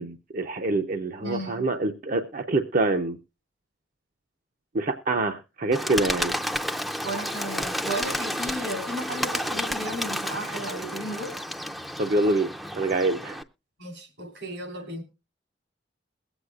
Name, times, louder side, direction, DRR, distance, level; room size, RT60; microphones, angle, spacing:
voice 1, 0.0-3.2 4.7-6.4 12.0-13.4, right 2 dB, 50° right, 0.6 m, -26 dB
voice 2, 1.2-1.7 7.0-11.4 13.8-15.0, right 1 dB, 85° right, 3.4 m, -34 dB
Bird, 5.7-13.4, equal, ahead, 0.5 m, -31 dB
21.5 x 8.1 x 2.4 m
head